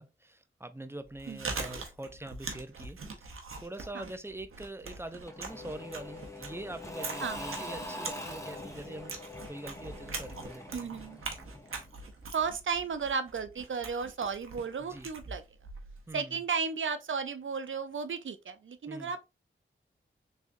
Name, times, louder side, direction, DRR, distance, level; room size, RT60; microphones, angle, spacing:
voice 1, 0.0-9.2 9.5-10.9 14.8-15.1 16.1-16.4 18.9-19.1, right 1 dB, 10° right, 0.5 m, -44 dB
Chewing mastication, 1.0-16.1, right 4 dB, 85° right, 0.8 m, -43 dB
Engine / Mechanisms / Drill, 5.3-11.9, left 1 dB, 15° left, 1.4 m, -43 dB
voice 2, 10.7-11.2 12.3-15.4 16.1-19.3, right 5 dB, 70° right, 0.5 m, -34 dB
3.4 x 3.2 x 2.6 m
cardioid pair, 45°, 21 cm